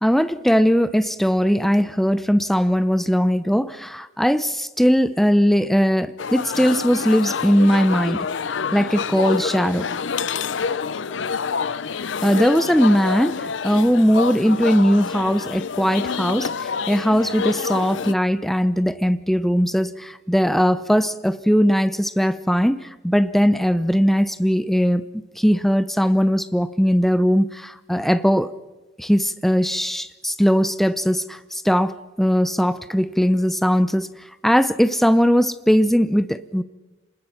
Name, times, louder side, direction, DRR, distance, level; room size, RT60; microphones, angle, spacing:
voice 1, 0.0-8.3 8.7-9.9 12.2-16.5 16.9-28.5 29.0-34.1 34.4-36.6, equal, ahead, 14 dB, 0.6 m, -19 dB
sound 1, 6.2-18.1, left 5 dB, 75° left, 0.6 m, -27 dB
27.0 x 20.5 x 5.8 m, 1.2 s
head